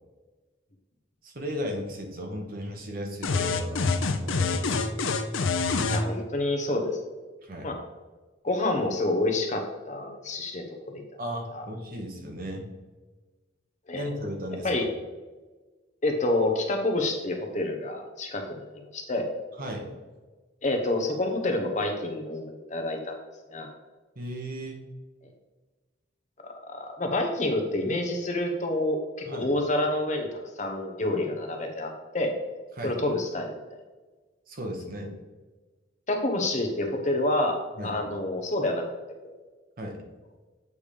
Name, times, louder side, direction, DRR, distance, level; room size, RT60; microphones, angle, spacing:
voice 1, 1.2-5.0 7.4-7.7 11.2-12.7 13.9-14.7 19.6-19.9 24.1-24.8 29.2-29.5 32.8-33.0 34.5-35.1 37.8-38.0 39.8-40.0, equal, 45° right, 1 dB, 1.2 m, -36 dB
sound 1, 3.2-6.0, left 4 dB, 85° left, 0.6 m, -26 dB
voice 2, 5.9-7.0 7.6-7.7 8.4-11.0 11.5-11.7 13.9-14.0 14.6-14.8 16.0-18.6 18.9-19.3 20.6-23.2 23.5-23.7 26.7-32.3 32.8-33.5 36.1-38.9 39.2-39.4, left 2 dB, 40° left, 3 dB, 0.9 m, -28 dB
8.3 x 3.5 x 5.0 m, 1.3 s
head